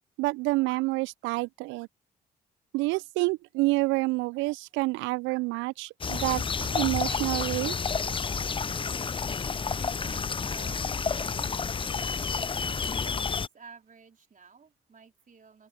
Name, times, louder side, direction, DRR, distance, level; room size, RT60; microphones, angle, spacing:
voice 1, 0.2-1.9 2.7-7.7, right 23 dB, 70° right, 0.5 m, -28 dB
sound 1, 6.0-13.5, left 5 dB, 25° left, 0.6 m, -30 dB
voice 2, 9.7-10.8 11.1-11.5 11.8-12.1 13.0-15.7, right 5 dB, 40° right, 4.2 m, -52 dB
open air
hypercardioid pair, 40°, 20 cm